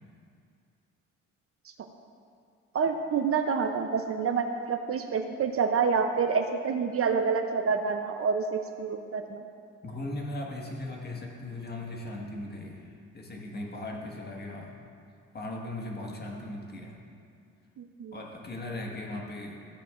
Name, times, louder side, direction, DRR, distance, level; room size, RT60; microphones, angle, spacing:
voice 1, 2.7-9.4 17.8-18.2, right 5 dB, 50° right, 6 dB, 0.7 m, -28 dB
voice 2, 9.8-14.7 15.3-17.0 18.1-19.6, left 1 dB, 35° left, -1 dB, 1.6 m, -38 dB
13.5 x 8.8 x 2.5 m, 2.4 s
cardioid pair, 90°, 30 cm